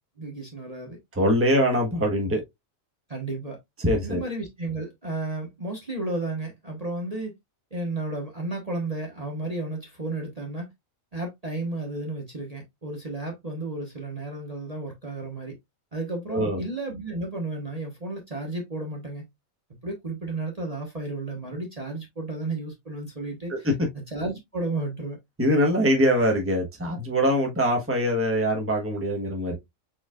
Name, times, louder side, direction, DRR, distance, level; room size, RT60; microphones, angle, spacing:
voice 1, 0.2-1.0 3.1-3.6 4.0-7.3 7.7-10.7 11.1-15.6 15.9-19.2 19.8-23.7 24.1-25.2, right 2 dB, 30° right, 1.2 m, -33 dB
voice 2, 1.1-2.4 3.8-4.3 16.3-16.6 23.5-23.7 25.4-29.6, equal, 10° right, 1.2 m, -23 dB
4.6 x 4.4 x 2.4 m
omnidirectional pair, 1.4 m